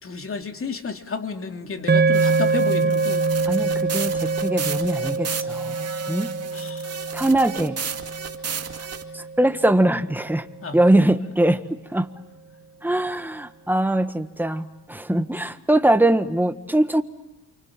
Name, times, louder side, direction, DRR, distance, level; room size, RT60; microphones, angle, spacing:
voice 1, 0.0-3.2 6.5-7.0 10.6-11.3, left 4 dB, 40° left, 5 dB, 2.9 m, -32 dB
sound 1, 1.9-10.3, right 4 dB, 30° right, 1.4 m, -25 dB
sound 2, 2.1-9.0, right 6 dB, 45° right, 2.5 m, -34 dB
voice 2, 3.5-6.3 7.1-7.8 9.1-10.5 10.7-11.6 11.9-12.1 12.8-17.0, right 1 dB, 5° right, 9 dB, 1.6 m, -22 dB
29.0 x 25.0 x 7.5 m, 0.99 s
cardioid pair, 80°, 35 cm